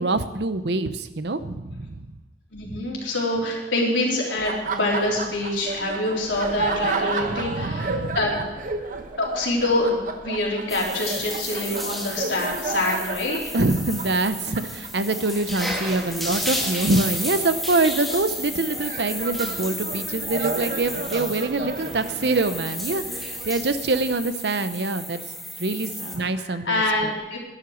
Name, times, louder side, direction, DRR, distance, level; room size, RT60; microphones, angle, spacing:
voice 1, 0.0-2.1 2.7-2.8 7.2-8.2 13.5-25.2 25.6-27.1, right 2 dB, 65° right, 11 dB, 0.8 m, -25 dB
voice 2, 2.5-8.3 9.2-13.4 25.9-27.4, left 2 dB, 85° left, -3 dB, 3.9 m, -26 dB
Laughter, 4.4-24.2, right 3 dB, 45° right, 1.1 m, -33 dB
sound 1, 10.7-26.2, equal, ahead, 2.0 m, -33 dB
11.5 x 11.0 x 6.4 m, 1.1 s
head